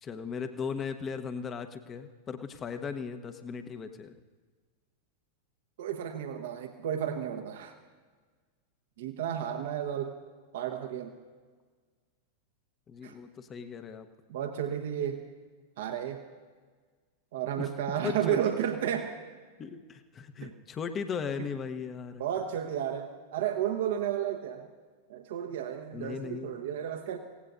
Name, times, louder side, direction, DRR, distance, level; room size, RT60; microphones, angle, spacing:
voice 1, 0.0-4.1 12.9-14.1 17.6-18.4 19.6-22.2 25.9-26.6, left 6 dB, 25° left, 8 dB, 1.0 m, -37 dB
voice 2, 5.8-7.7 9.0-10.2 10.5-11.1 13.0-13.1 14.3-15.2 15.8-16.2 17.3-19.2 20.4-20.5 22.2-24.7 25.1-27.2, right 9 dB, 55° right, 6 dB, 1.1 m, -32 dB
25.0 x 17.5 x 2.6 m, 1.5 s
figure-of-eight pair, 90°, 0 cm